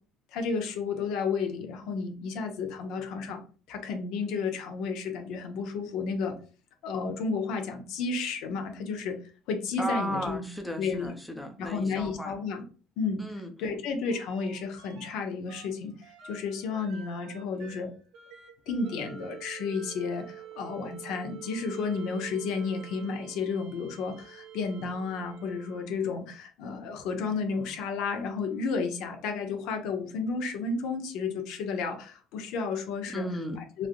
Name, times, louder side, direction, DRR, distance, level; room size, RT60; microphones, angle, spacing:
voice 1, 0.3-3.4 3.7-6.4 6.8-9.2 9.5-10.4 10.8-11.1 11.6-12.6 13.0-13.2 13.6-15.9 16.2-17.9 18.7-33.3 33.8-33.9, left 4 dB, 75° left, 5 dB, 0.6 m, -32 dB
voice 2, 9.8-12.4 13.2-13.5 33.1-33.6, equal, 5° left, 5 dB, 0.5 m, -35 dB
sound 1, 14.1-15.1 15.5-26.3 27.1-28.7 30.4-30.5, right 9 dB, 70° right, 0.9 m, -48 dB
3.2 x 2.4 x 2.5 m, 0.38 s
cardioid pair, 125°, 0 cm